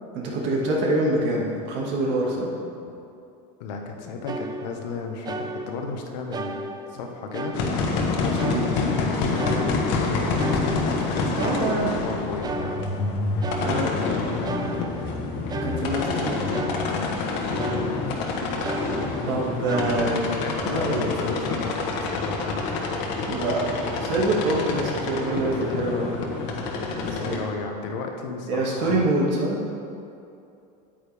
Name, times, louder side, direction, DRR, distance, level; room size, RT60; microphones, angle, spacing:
voice 1, 0.1-2.5 8.5-8.7 11.4-12.2 13.6-13.9 15.6-16.5 19.3-21.1 23.3-26.2 26.9-27.4 28.5-29.6, right 2 dB, 60° right, -2 dB, 2.0 m, -25 dB
voice 2, 3.6-7.6 8.2-8.7 9.0-10.7 11.1-12.8 13.6-15.0 16.8-17.2 19.7-20.0 20.4-22.6 27.2-29.0, left 4 dB, 85° left, 2 dB, 1.2 m, -33 dB
sound 1, 4.3-5.0 5.3-6.0 6.3-8.1 8.4-9.1 9.4-12.1 12.4-14.1 14.4-17.3 17.6-18.3 18.6-20.3, right 2 dB, 20° right, 0.5 m, -34 dB
sound 2, 7.5-27.4, left 3 dB, 60° left, 1.3 m, -27 dB
8.9 x 8.9 x 3.5 m, 2.7 s
supercardioid pair, 130°, 21 cm